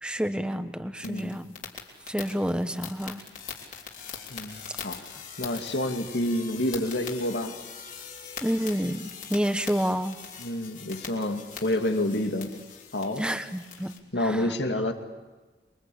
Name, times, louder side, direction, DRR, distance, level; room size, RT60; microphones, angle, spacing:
voice 1, 0.0-1.6 2.1-3.2 8.4-10.2 13.2-14.5, equal, 5° right, 9 dB, 1.1 m, -29 dB
voice 2, 1.0-1.4 4.3-5.0 5.4-7.6 10.4-12.6 12.9-13.2 14.1-14.9, left 1 dB, 85° left, 5 dB, 2.4 m, -28 dB
sound 1, 1.0-14.0, left 6 dB, 45° left, 3.6 m, -42 dB
27.5 x 23.0 x 8.6 m, 1.3 s
head